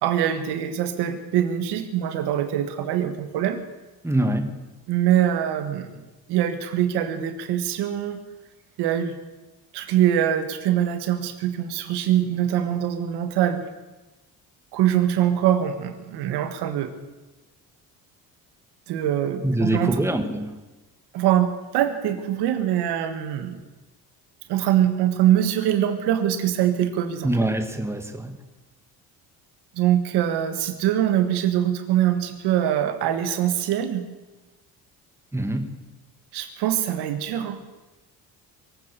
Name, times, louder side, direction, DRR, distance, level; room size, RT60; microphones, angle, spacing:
voice 1, 0.0-3.6 4.9-6.0 6.3-8.2 8.8-9.2 9.7-13.6 14.7-16.9 18.9-19.9 21.1-23.6 24.5-27.3 29.7-34.0 36.3-37.6, right 11 dB, 90° right, 8 dB, 1.6 m, -23 dB
voice 2, 4.0-4.6 19.4-20.6 27.2-28.4 35.3-35.7, right 1 dB, 5° right, 6 dB, 1.7 m, -24 dB
22.5 x 9.1 x 6.9 m, 1.1 s
cardioid pair, 100°, 39 cm